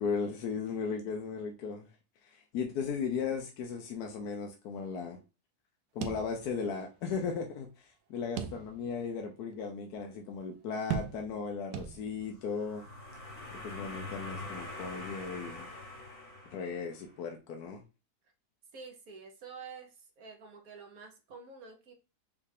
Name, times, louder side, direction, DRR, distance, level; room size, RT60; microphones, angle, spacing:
voice 1, 0.0-1.9 2.2-5.2 5.9-12.8 13.5-15.7 16.5-17.8, left 5 dB, 80° left, 1.2 m, -36 dB
sound 1, 6.0-6.9 7.2-7.3 8.4-9.0 9.5-9.6 10.9-11.5 11.7-12.4, right 8 dB, 85° right, 1.2 m, -38 dB
sound 2, 12.4-17.1, left 2 dB, 55° left, 1.8 m, -44 dB
voice 2, 18.7-21.9, right 5 dB, 65° right, 1.3 m, -48 dB
5.4 x 2.5 x 3.3 m
omnidirectional pair, 1.7 m